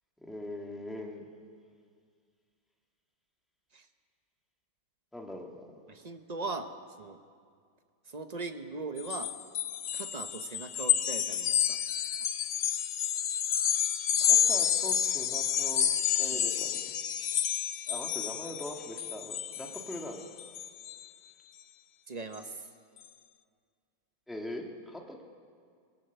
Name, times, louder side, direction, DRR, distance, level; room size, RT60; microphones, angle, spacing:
voice 1, 0.2-1.3 5.1-5.7 14.2-16.9 17.9-20.2 24.3-25.2, left 1 dB, ahead, 0 dB, 2.0 m, -41 dB
voice 2, 5.9-6.7 7.0-7.2 8.0-9.3 9.9-11.8 16.3-16.5 22.1-22.7, right 3 dB, 35° right, 7 dB, 0.6 m, -39 dB
sound 1, 9.0-21.1, left 10 dB, 65° left, 0.8 m, -30 dB
23.5 x 19.5 x 8.2 m, 2.1 s
omnidirectional pair, 2.2 m